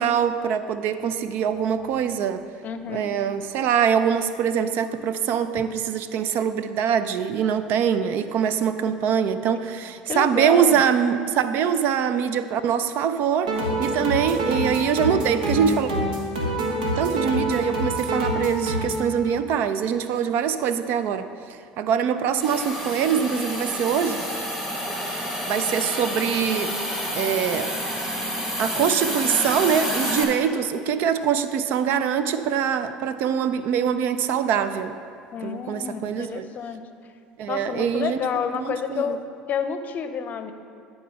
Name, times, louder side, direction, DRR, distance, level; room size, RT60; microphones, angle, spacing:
voice 1, 0.0-2.4 2.9-15.9 16.9-21.3 21.8-24.3 25.2-26.7 27.1-27.7 28.6-35.0 35.4-36.5 37.4-38.2 38.5-39.1, right 8 dB, 60° right, 11 dB, 0.4 m, -23 dB
voice 2, 2.6-3.1 10.1-10.8 35.3-36.8 37.5-39.2 39.5-40.5, left 7 dB, 45° left, 9 dB, 0.6 m, -29 dB
sound 1, 13.4-19.0, right 1 dB, 85° right, 1.3 m, -26 dB
Hiss, 22.4-30.2, equal, 10° right, 1.7 m, -29 dB
10.5 x 4.3 x 5.6 m, 2.4 s
hypercardioid pair, 75°, 4 cm